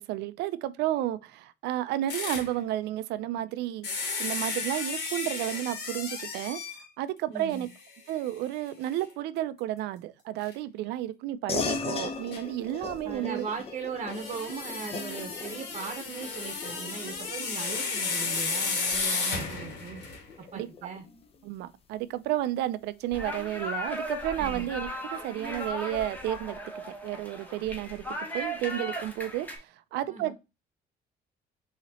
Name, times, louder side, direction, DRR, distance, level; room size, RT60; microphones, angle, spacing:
voice 1, 0.1-6.6 7.0-7.7 8.1-13.5 20.5-20.9 21.4-28.0 28.3-30.4, right 13 dB, 85° right, 0.4 m, -32 dB
sound 1, 2.1-2.5 3.8-6.9 7.5-7.6 8.1-8.2 10.4-10.5 12.3-12.4 14.1-20.3, left 4 dB, 80° left, 1.6 m, -33 dB
voice 2, 7.3-7.7 13.0-20.0 20.5-21.0 24.4-24.7 30.1-30.3, right 5 dB, 35° right, 0.8 m, -38 dB
sound 2, 11.5-21.4, left 4 dB, 35° left, 0.7 m, -39 dB
sound 3, 23.1-29.6, equal, 10° left, 1.1 m, -37 dB
4.2 x 2.8 x 4.1 m
cardioid pair, 110°, 17 cm